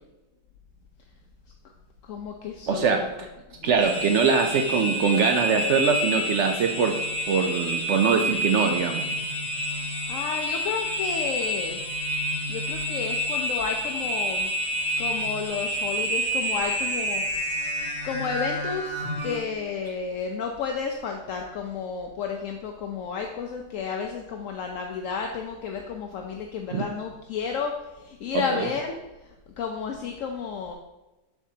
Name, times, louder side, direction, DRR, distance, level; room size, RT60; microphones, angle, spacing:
voice 1, 2.1-2.9 3.6-3.7 10.1-11.8 12.5-14.5 15.0-17.2 18.0-27.7 28.0-28.9 29.6-30.7, left 5 dB, 65° left, 2 dB, 0.8 m, -31 dB
voice 2, 2.7-3.3 3.6-7.0 7.3-9.1 26.7-26.8 28.3-28.7, right 5 dB, 85° right, 5 dB, 0.6 m, -23 dB
sound 1, 3.8-19.4, equal, 50° left, 2.9 m, -29 dB
7.1 x 6.9 x 2.8 m, 1.0 s
omnidirectional pair, 1.8 m